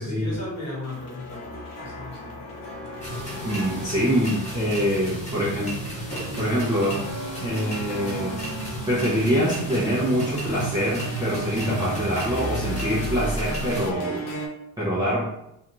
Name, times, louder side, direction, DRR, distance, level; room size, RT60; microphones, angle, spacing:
voice 1, 0.0-2.6, left 2 dB, 45° left, -5 dB, 1.2 m, -36 dB
sound 1, 0.6-14.5, equal, 60° left, 0.7 m, -37 dB
sound 2, 3.0-13.9, equal, 20° left, 0.7 m, -34 dB
voice 2, 3.4-5.7 6.4-7.0 7.4-8.4 8.9-14.3 14.8-15.3, equal, 10° right, -9 dB, 0.5 m, -25 dB
sound 3, 3.9-13.9, right 3 dB, 80° right, 0.5 m, -36 dB
2.6 x 2.3 x 2.9 m, 0.83 s
cardioid pair, 175°, 37 cm